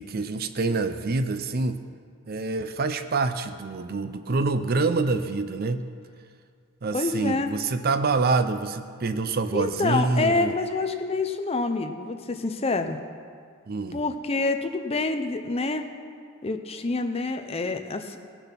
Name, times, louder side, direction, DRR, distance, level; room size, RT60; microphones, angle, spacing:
voice 1, 0.0-1.8 2.3-5.8 6.8-10.5 13.7-14.0, right 3 dB, 45° right, 10 dB, 0.5 m, -26 dB
voice 2, 6.9-7.5 9.5-13.0 13.9-15.8 16.4-18.2, left 3 dB, 25° left, 7 dB, 0.6 m, -27 dB
18.5 x 7.0 x 5.8 m, 2.1 s
head